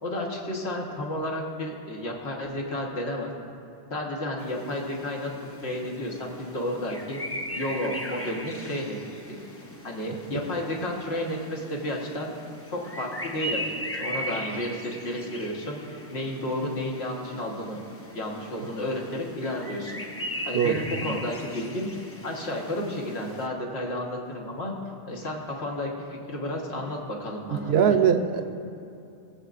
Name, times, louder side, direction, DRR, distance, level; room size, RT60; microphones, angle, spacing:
voice 1, 0.0-3.3 3.9-5.3 5.6-7.2 7.5-9.0 9.8-12.3 12.7-13.6 14.0-17.8 18.1-20.0 20.4-21.9 22.2-24.7 25.0-28.0, left 1 dB, 70° left, -1 dB, 1.5 m, -32 dB
sound 1, 4.4-23.5, equal, 15° left, 0.5 m, -39 dB
voice 2, 27.5-28.4, right 8 dB, 70° right, 7 dB, 0.9 m, -22 dB
19.5 x 8.2 x 2.5 m, 2.7 s
omnidirectional pair, 1.1 m